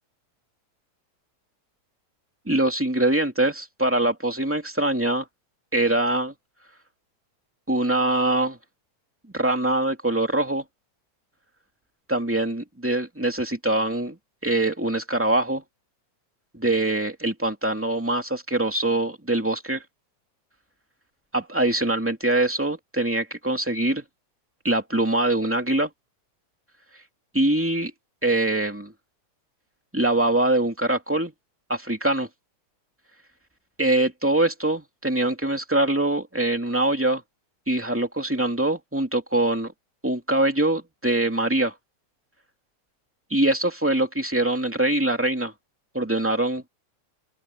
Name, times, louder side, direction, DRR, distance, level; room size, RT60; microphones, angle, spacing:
voice 1, 2.5-5.3 5.7-6.3 7.7-8.6 9.3-10.6 12.1-14.2 14.4-15.6 16.5-19.8 21.3-24.0 24.6-25.9 27.3-27.9 28.2-28.9 29.9-31.3 31.7-32.3 33.8-37.2 37.7-39.7 40.0-41.7 43.3-45.5 45.9-46.6, right 2 dB, 5° right, 2.1 m, -23 dB
open air
omnidirectional pair, 3.3 m